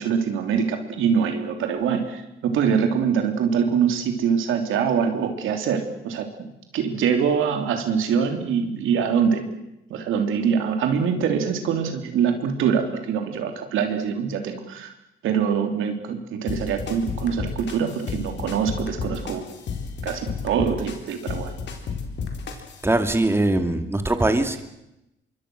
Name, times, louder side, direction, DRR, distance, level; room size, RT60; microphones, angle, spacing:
voice 1, 0.0-6.2 6.7-9.5 9.9-14.9 15.2-19.4 20.0-21.5, right 7 dB, 85° right, 5 dB, 3.4 m, -24 dB
sound 1, 16.5-22.8, left 5 dB, 65° left, 4.0 m, -32 dB
voice 2, 22.8-24.6, right 2 dB, 10° right, 7 dB, 2.2 m, -21 dB
26.5 x 22.5 x 6.4 m, 0.87 s
cardioid pair, 90°, 20 cm